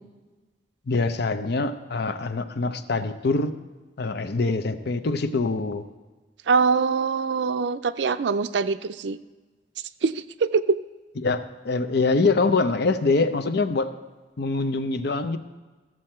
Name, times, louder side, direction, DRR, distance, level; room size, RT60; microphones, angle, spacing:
voice 1, 0.9-3.5 4.0-5.9 11.2-13.9 14.4-15.4, left 3 dB, 65° left, 11 dB, 0.6 m, -24 dB
voice 2, 6.5-9.2 10.0-10.8, right 5 dB, 70° right, 13 dB, 0.5 m, -23 dB
14.0 x 7.6 x 4.4 m, 1.3 s
head